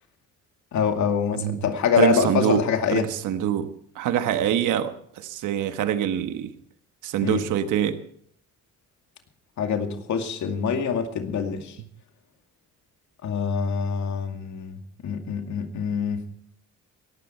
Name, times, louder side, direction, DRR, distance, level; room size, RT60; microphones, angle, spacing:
voice 1, 0.7-3.1 7.2-7.4 9.6-11.8 13.2-16.3, left 6 dB, 70° left, 5 dB, 2.3 m, -25 dB
voice 2, 2.0-2.6 2.9-6.5 7.0-8.0, right 10 dB, 80° right, 9 dB, 1.3 m, -25 dB
17.5 x 14.5 x 4.4 m, 0.64 s
cardioid pair, 90°, 30 cm